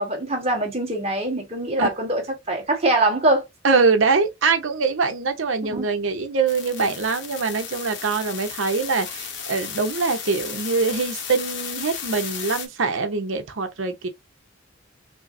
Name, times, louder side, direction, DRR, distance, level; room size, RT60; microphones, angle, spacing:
voice 1, 0.0-2.2 2.5-3.4 5.7-5.8, right 2 dB, 30° right, 1.4 m, -23 dB
voice 2, 3.6-14.1, right 4 dB, 70° right, 0.7 m, -23 dB
sound 1, 6.5-12.7, left 7 dB, 60° left, 0.8 m, -34 dB
5.3 x 2.0 x 2.6 m
head